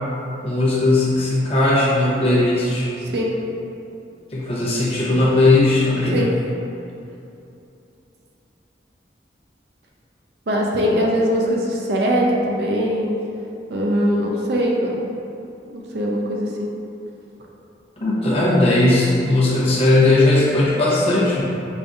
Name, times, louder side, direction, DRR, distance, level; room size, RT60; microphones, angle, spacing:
voice 1, 0.4-2.9 4.3-6.2 18.0-21.4, left 2 dB, 30° left, -7 dB, 0.7 m, -17 dB
voice 2, 10.5-13.1 13.7-15.0 15.7-16.7, equal, 65° right, -2 dB, 0.4 m, -21 dB
5.1 x 2.5 x 2.4 m, 2.8 s
head